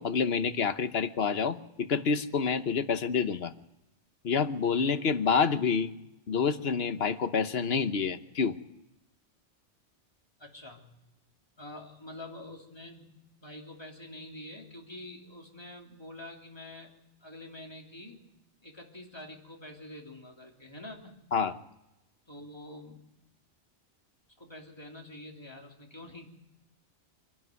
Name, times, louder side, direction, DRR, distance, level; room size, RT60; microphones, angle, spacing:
voice 1, 0.0-3.5 4.2-5.9 6.3-8.6 21.3-21.5, left 5 dB, 60° left, 11 dB, 1.2 m, -28 dB
voice 2, 10.4-10.9 11.6-16.9 17.2-18.2 18.6-21.2 22.3-23.0 24.4-26.3, left 1 dB, 20° left, 0 dB, 3.3 m, -46 dB
25.5 x 12.0 x 9.4 m, 0.92 s
omnidirectional pair, 1.2 m